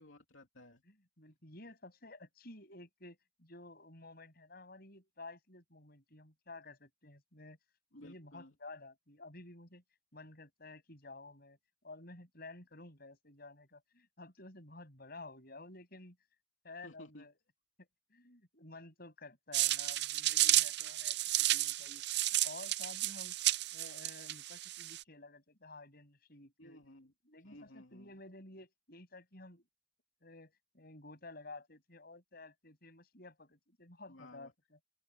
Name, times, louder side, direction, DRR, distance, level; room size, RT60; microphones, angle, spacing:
voice 1, 0.0-0.8 7.9-8.5 16.8-17.3 26.6-27.1 27.4-28.1 34.1-34.5, left 1 dB, 80° left, 2.8 m, -55 dB
voice 2, 0.9-7.6 8.0-9.8 10.1-11.6 11.8-16.2 16.6-17.4 17.8-23.3 23.7-26.8 27.2-29.6 30.2-34.8, left 2 dB, 50° left, 7.9 m, -53 dB
sound 1, 19.5-25.0, right 15 dB, 55° right, 0.6 m, -32 dB
open air
head